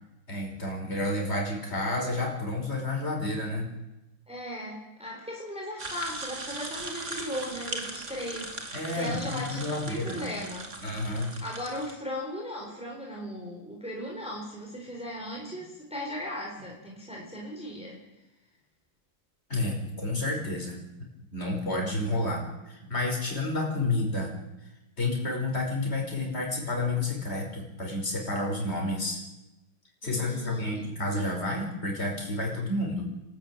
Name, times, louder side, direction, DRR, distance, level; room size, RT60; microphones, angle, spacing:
voice 1, 0.3-3.7 8.7-10.3 10.8-11.3 19.5-20.8 21.3-24.3 25.0-29.2 30.0-33.1, left 2 dB, 30° left, 0 dB, 5.4 m, -30 dB
voice 2, 4.3-10.7 11.0-18.0 30.0-30.8, left 1 dB, 5° right, -2 dB, 4.0 m, -37 dB
sound 1, 5.8-11.9, right 2 dB, 35° right, 2.6 m, -39 dB
29.0 x 13.0 x 9.0 m, 1.0 s
omnidirectional pair, 2.1 m